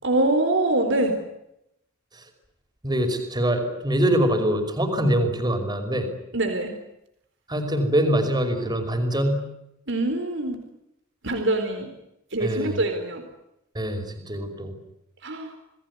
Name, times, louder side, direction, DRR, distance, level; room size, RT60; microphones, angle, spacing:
voice 1, 0.0-1.2 6.3-6.8 9.9-10.6 11.2-11.9 12.3-13.2 15.2-15.5, right 2 dB, 60° right, 5 dB, 4.2 m, -24 dB
voice 2, 2.8-6.1 7.5-9.4 12.4-12.8 13.7-14.7, right 1 dB, 20° right, 6 dB, 5.4 m, -24 dB
28.5 x 20.0 x 9.7 m, 0.84 s
head